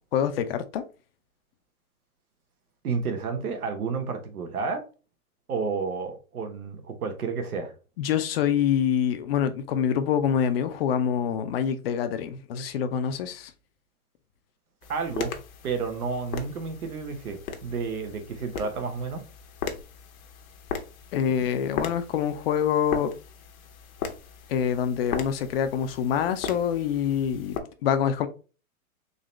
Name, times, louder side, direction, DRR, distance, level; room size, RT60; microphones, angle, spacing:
voice 1, 0.1-0.8 8.0-13.5 21.1-23.1 24.5-27.6 27.8-28.3, left 8 dB, 45° left, 0.5 m, -25 dB
voice 2, 2.8-4.8 5.5-7.7 14.9-15.3 15.6-19.2, right 5 dB, 85° right, 1.2 m, -31 dB
sound 1, 14.8-27.6, left 6 dB, 70° left, 0.9 m, -38 dB
3.9 x 2.7 x 3.1 m
hypercardioid pair, 135°, 43 cm